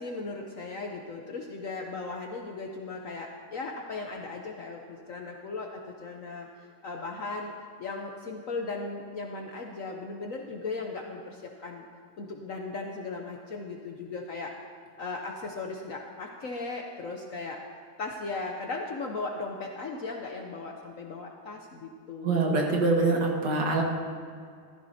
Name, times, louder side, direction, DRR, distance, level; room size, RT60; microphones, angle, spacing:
voice 1, 0.0-6.5 6.8-11.8 12.2-14.5 15.0-17.6 18.0-22.5, left 3 dB, 55° left, 1 dB, 1.0 m, -37 dB
voice 2, 22.2-23.8, right 3 dB, 60° right, -1 dB, 2.1 m, -24 dB
14.5 x 13.5 x 2.8 m, 2.2 s
omnidirectional pair, 2.1 m